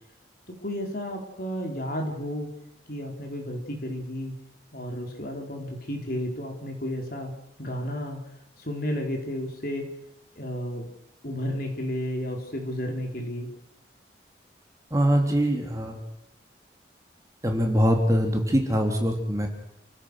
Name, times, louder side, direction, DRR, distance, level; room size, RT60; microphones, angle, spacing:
voice 1, 0.6-2.5 2.9-4.3 4.7-7.3 7.6-8.2 8.6-9.8 10.4-10.9 11.2-13.5, equal, 50° left, 2 dB, 4.6 m, -32 dB
voice 2, 14.9-16.0 17.4-19.5, equal, 15° right, 2 dB, 3.3 m, -23 dB
29.0 x 16.0 x 6.5 m, 0.77 s
head